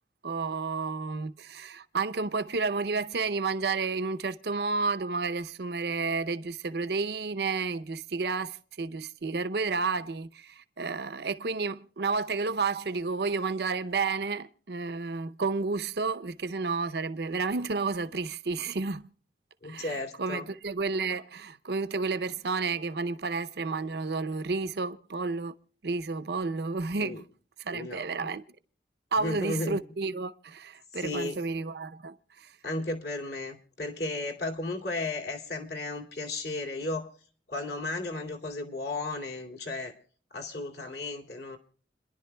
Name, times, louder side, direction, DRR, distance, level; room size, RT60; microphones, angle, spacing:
voice 1, 0.2-19.1 19.6-25.5 25.8-27.2 27.6-28.4 29.1-32.5, right 4 dB, 65° right, 0.6 m, -31 dB
voice 2, 19.6-20.5 27.0-27.2 27.7-28.3 29.2-29.8 30.9-31.4 32.6-37.1 37.5-39.9 40.3-41.6, left 2 dB, 65° left, 2.3 m, -34 dB
29.5 x 11.0 x 2.2 m
head